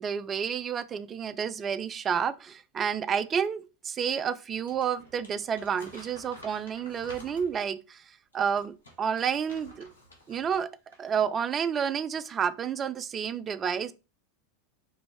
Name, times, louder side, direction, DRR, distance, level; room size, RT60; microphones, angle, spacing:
voice 1, 0.0-8.0 8.3-9.9 10.3-10.7 11.0-13.9, right 7 dB, 30° right, 0.3 m, -30 dB
Crumpling crinkling, 4.5-7.7 8.3-10.6 10.9-11.1, equal, 85° left, 1.1 m, -51 dB
4.5 x 2.5 x 3.3 m
figure-of-eight pair, 85°, 0 cm